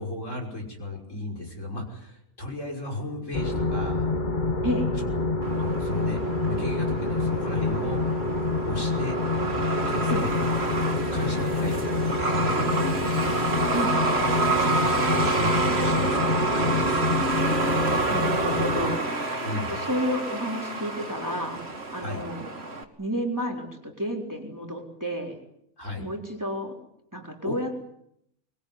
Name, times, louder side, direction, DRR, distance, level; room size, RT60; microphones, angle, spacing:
voice 1, 0.0-4.1 5.0-5.1 5.6-8.0 8.6-9.2 9.9-10.5 10.8-13.0 14.6-14.7 15.1-17.0 19.4-19.7 22.0-22.2 25.8-26.1 27.4-27.6, left 2 dB, 55° left, 1 dB, 6.2 m, -34 dB
sound 1, 3.3-19.0, left 3 dB, 35° left, 1.3 m, -27 dB
Truck, 5.4-22.8, right 3 dB, 45° right, 2.8 m, -28 dB
voice 2, 18.1-19.3 19.7-21.6 21.9-22.5 23.0-25.3 26.0-26.7 27.1-27.8, equal, 10° right, 1 dB, 4.1 m, -31 dB
25.0 x 22.5 x 9.6 m, 0.75 s
omnidirectional pair, 1.6 m